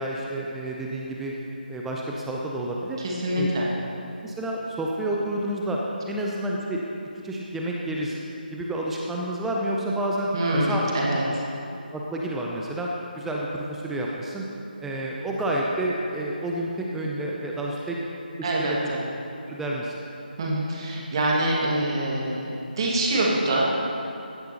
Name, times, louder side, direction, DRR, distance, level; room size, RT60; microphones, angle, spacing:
voice 1, 0.0-1.3 1.7-3.0 3.4-3.5 4.2-5.8 6.1-6.8 7.2-8.2 8.5-10.8 11.3-11.4 11.9-12.9 13.2-14.5 14.8-18.0 18.4-18.8 19.5-20.0, right 1 dB, 5° right, -3 dB, 0.4 m, -29 dB
voice 2, 3.0-3.7 10.3-11.4 18.4-19.0 20.4-23.8, right 1 dB, 30° right, -3 dB, 1.8 m, -25 dB
15.5 x 10.5 x 2.9 m, 2.9 s
figure-of-eight pair, 155°, 5 cm